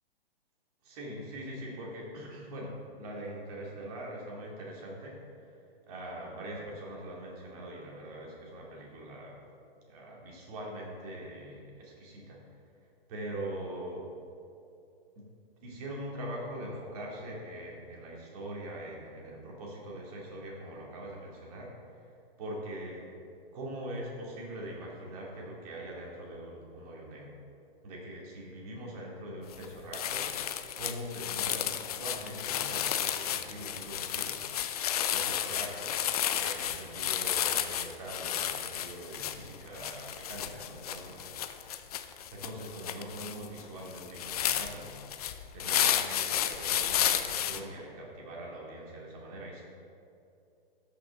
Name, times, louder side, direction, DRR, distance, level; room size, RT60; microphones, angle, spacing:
voice 1, 0.8-5.5 5.9-9.4 9.9-12.4 13.1-14.1 15.2-15.3 15.6-22.1 22.4-23.1 23.5-27.4 27.8-34.7 35.1-36.0 36.3-41.3 42.3-45.0 45.5-49.6, right 1 dB, 40° right, -2 dB, 2.3 m, -42 dB
sound 1, 29.5-29.7 29.9-47.6, left 10 dB, 40° left, 0.5 m, -32 dB
13.0 x 5.9 x 3.8 m, 2.6 s
figure-of-eight pair, 115°, 29 cm